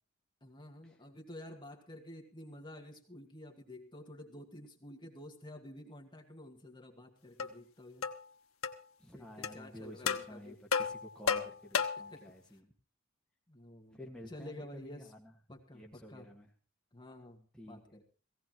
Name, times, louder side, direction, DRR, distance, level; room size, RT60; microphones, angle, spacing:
voice 1, 0.4-8.1 9.1-10.6 12.1-12.3 13.5-14.0 14.3-15.1 15.5-16.3 16.9-18.0, left 1 dB, 20° left, 2 dB, 2.0 m, -50 dB
sound 1, 7.4-7.5 8.0-8.2 8.6-8.8 9.4-9.5 10.1-10.3 10.7-12.1, left 6 dB, 85° left, 1.1 m, -32 dB
voice 2, 9.0-12.7 13.9-15.3 15.7-16.5 17.5-17.8, equal, 5° left, -2 dB, 1.8 m, -51 dB
17.5 x 16.5 x 3.0 m, 0.38 s
head